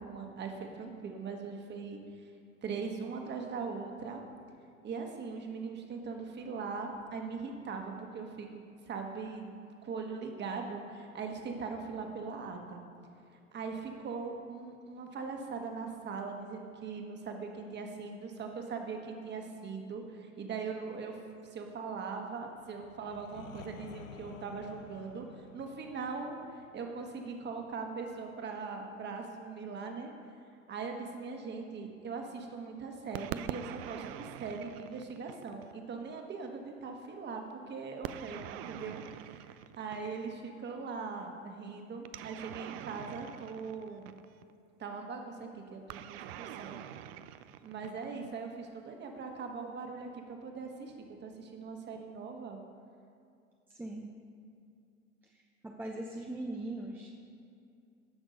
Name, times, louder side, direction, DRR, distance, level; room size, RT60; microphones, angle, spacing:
voice 1, 0.0-2.3 2.6-4.2 4.8-8.5 8.8-9.5 9.8-12.8 13.3-21.2 21.4-30.1 30.7-44.1 44.8-46.8 47.6-50.9 51.2-52.6, right 4 dB, 25° right, 3 dB, 1.6 m, -40 dB
sound 1, 22.5-28.3, left 6 dB, 70° left, 0.8 m, -53 dB
sound 2, 33.1-35.8 38.0-40.4 42.0-44.5 45.9-48.3, right 11 dB, 45° right, 0.5 m, -44 dB
voice 2, 53.7-54.1 55.6-57.1, right 2 dB, 5° right, -1 dB, 0.7 m, -40 dB
15.0 x 6.2 x 5.3 m, 2.5 s
figure-of-eight pair, 85°, 41 cm